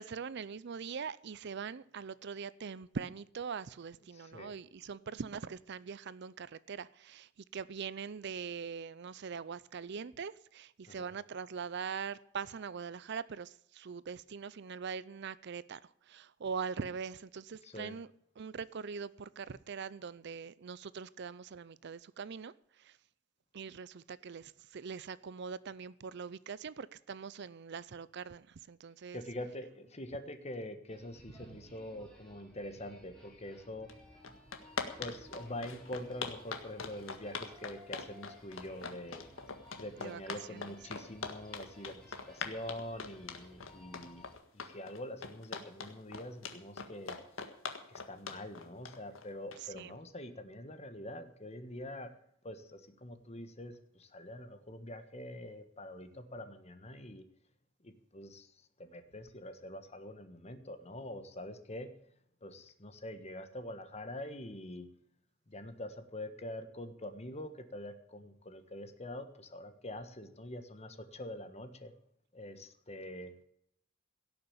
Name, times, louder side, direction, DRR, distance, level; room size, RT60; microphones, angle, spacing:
voice 1, 0.0-18.1 18.4-23.0 23.5-29.2 31.4-31.6 40.0-41.1 49.6-50.0, right 6 dB, 55° right, 0.5 m, -42 dB
voice 2, 4.1-4.5 10.9-11.1 17.6-17.9 29.1-33.9 35.0-39.3 39.8-44.3 44.5-47.2 47.9-52.1 52.4-57.2 57.8-58.5 58.8-61.9 62.4-64.9 65.5-71.9 72.3-73.3, left 1 dB, 30° left, 1.4 m, -45 dB
sound 1, 30.9-44.3, left 1 dB, 5° left, 3.8 m, -58 dB
sound 2, 33.9-34.0 34.2-49.8, left 5 dB, 80° left, 1.7 m, -41 dB
17.0 x 6.8 x 8.7 m
head